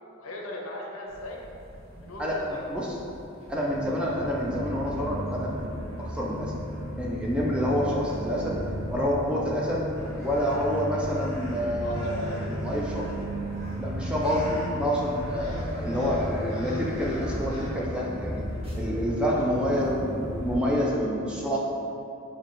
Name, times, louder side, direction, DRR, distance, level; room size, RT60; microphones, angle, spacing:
voice 1, 0.2-1.4 2.0-2.6 11.8-12.4 19.3-19.5, left 1 dB, 70° left, -2 dB, 0.5 m, -38 dB
sound 1, 1.1-20.6, equal, 25° right, 0.8 m, -35 dB
voice 2, 2.2-2.9 3.5-6.5 7.0-8.6 8.9-9.8 10.2-13.1 13.8-18.4 18.7-21.6, equal, 5° right, -4 dB, 0.3 m, -28 dB
sound 2, 9.9-17.7, left 1 dB, 15° left, 0.7 m, -47 dB
5.8 x 2.2 x 2.5 m, 2.7 s
head